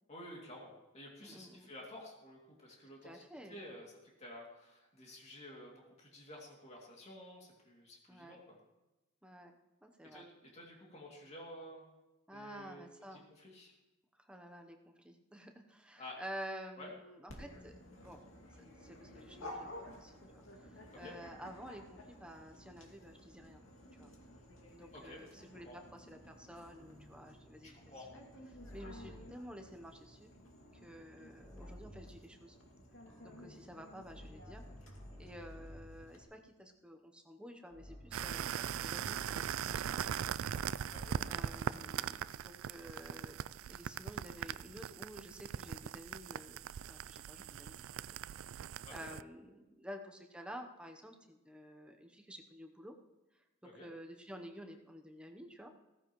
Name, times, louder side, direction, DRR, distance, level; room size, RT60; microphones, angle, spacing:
voice 1, 0.1-3.2 3.5-3.9 4.2-8.4 10.0-10.3 10.5-11.8 12.3-12.8 13.1-13.7 16.0-16.2 16.8-16.9 21.0-21.1 24.9-25.2 25.6-25.8 27.6-28.1 40.9-41.2 48.8-49.1 53.6-53.9, left 1 dB, 35° left, -2 dB, 2.5 m, -51 dB
voice 2, 1.2-1.7 3.0-3.6 8.1-8.4 9.2-9.5 9.8-10.2 12.3-13.2 14.1-17.7 18.0-18.2 18.8-23.6 24.0-24.1 24.7-28.1 28.7-30.3 30.8-32.6 33.2-34.6 35.2-40.2 41.3-43.4 43.7-48.0 48.3-52.9 53.6-55.7, equal, 5° right, 3 dB, 0.8 m, -51 dB
Dog, 17.3-36.2, left 1 dB, 75° left, 2.4 m, -54 dB
sound 1, 26.6-29.4 31.4-32.2 33.1-36.1 37.7-41.6, equal, 15° left, 2.6 m, -53 dB
sound 2, 38.1-49.2, right 9 dB, 85° right, 0.3 m, -40 dB
15.5 x 14.5 x 3.1 m, 1.0 s
head